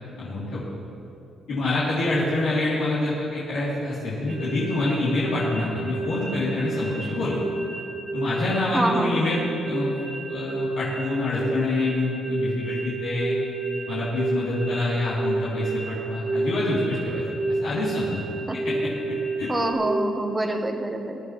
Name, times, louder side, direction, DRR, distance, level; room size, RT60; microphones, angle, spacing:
voice 1, 0.2-0.6 1.5-7.4 8.1-13.4 13.9-17.2 17.5-18.2 18.6-18.9 19.4-19.5, left 2 dB, 85° left, -11 dB, 3.3 m, -26 dB
sound 1, 4.3-19.7, right 3 dB, 90° right, 3.2 m, -30 dB
voice 2, 8.7-9.3 18.5-18.6 19.5-21.2, right 1 dB, 15° right, 4 dB, 1.3 m, -26 dB
22.0 x 11.0 x 3.2 m, 2.8 s
cardioid pair, 90°, 0 cm